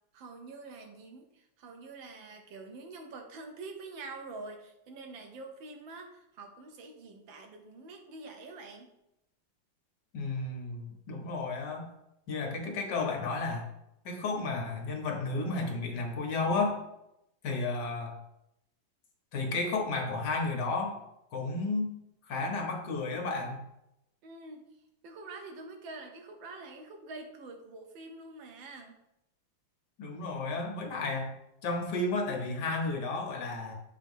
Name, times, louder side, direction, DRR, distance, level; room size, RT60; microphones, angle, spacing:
voice 1, 0.1-8.9 24.2-24.6 25.0-28.9, right 3 dB, 90° right, 4 dB, 1.8 m, -46 dB
voice 2, 10.1-11.9 12.3-13.7 14.0-16.8 17.4-18.1 19.3-21.0 21.3-21.9 22.3-23.6 30.0-31.3 31.6-33.7, left 3 dB, 65° left, 2 dB, 1.6 m, -32 dB
8.0 x 3.0 x 5.3 m, 0.84 s
omnidirectional pair, 2.0 m